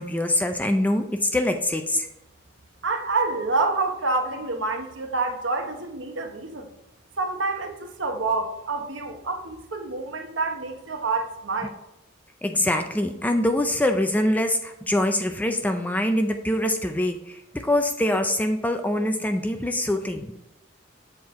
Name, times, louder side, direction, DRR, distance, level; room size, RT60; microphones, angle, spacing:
voice 1, 0.0-2.1 12.4-20.3, left 1 dB, 10° left, 0.4 m, -24 dB
voice 2, 2.8-6.7 7.2-11.7, right 3 dB, 70° right, 1.0 m, -27 dB
7.5 x 4.4 x 3.6 m
head